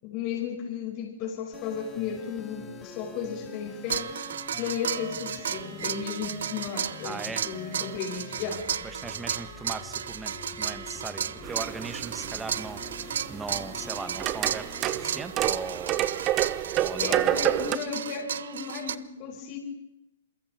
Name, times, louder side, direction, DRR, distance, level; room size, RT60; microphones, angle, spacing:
voice 1, 0.0-4.1 4.6-8.7 17.0-19.6, left 7 dB, 40° left, 1 dB, 5.5 m, -34 dB
sound 1, 1.5-15.2, left 5 dB, 20° left, 2.9 m, -46 dB
sound 2, 3.9-19.0, right 8 dB, 70° right, 0.9 m, -34 dB
voice 2, 7.0-7.5 8.8-16.1 16.8-17.4, right 4 dB, 10° right, 12 dB, 1.9 m, -39 dB
sound 3, 11.4-17.8, right 13 dB, 30° right, 1.3 m, -29 dB
28.0 x 23.5 x 5.4 m, 0.86 s
hypercardioid pair, 125°, 0 cm